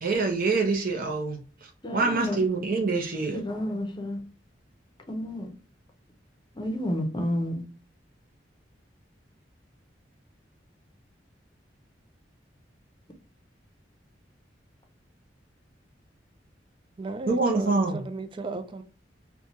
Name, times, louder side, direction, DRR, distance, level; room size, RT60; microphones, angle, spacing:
voice 1, 0.0-3.4 17.3-18.0, right 3 dB, 50° right, 0.7 m, -26 dB
voice 2, 1.8-2.4 3.3-4.2 5.1-5.5 6.6-7.6, left 1 dB, 25° left, 0.6 m, -30 dB
voice 3, 17.0-18.8, right 3 dB, 25° right, 0.3 m, -35 dB
4.3 x 2.3 x 2.7 m
head